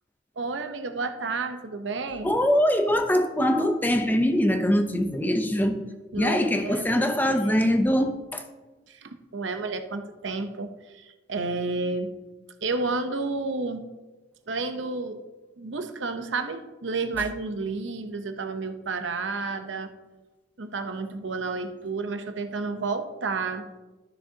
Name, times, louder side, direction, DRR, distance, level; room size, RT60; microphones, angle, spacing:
voice 1, 0.4-2.3 6.1-7.6 8.9-12.1 12.6-13.8 14.5-15.2 15.6-19.9 20.6-23.6, right 3 dB, 85° right, 7 dB, 0.8 m, -31 dB
voice 2, 2.2-5.8 6.2-8.4, equal, 10° left, 6 dB, 0.6 m, -23 dB
13.0 x 6.5 x 2.8 m, 1.1 s
head